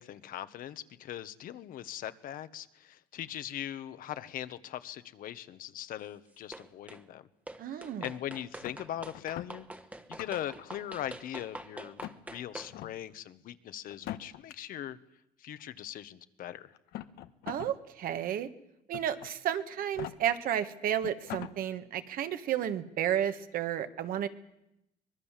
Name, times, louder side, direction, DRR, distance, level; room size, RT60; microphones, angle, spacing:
voice 1, 0.0-7.3 7.7-9.7 10.1-12.0 12.3-15.0 15.4-16.7, left 11 dB, 60° left, 12 dB, 1.2 m, -40 dB
sound 1, 6.5-7.0 7.5-12.8, right 1 dB, 10° right, 1.2 m, -45 dB
voice 2, 7.6-8.0 17.5-18.5 18.9-24.3, right 10 dB, 60° right, 9 dB, 1.6 m, -32 dB
sound 2, 8.6-9.5 10.0-10.6 11.0-11.6 12.0-12.2 12.7-12.9 13.9-14.5 15.6-15.7 16.7-17.7 18.1-18.2 18.9-19.3 19.8-20.1 20.7-20.8 21.0-21.5, left 14 dB, 85° left, 1.2 m, -42 dB
24.0 x 21.0 x 7.5 m, 0.86 s
cardioid pair, 140°, 16 cm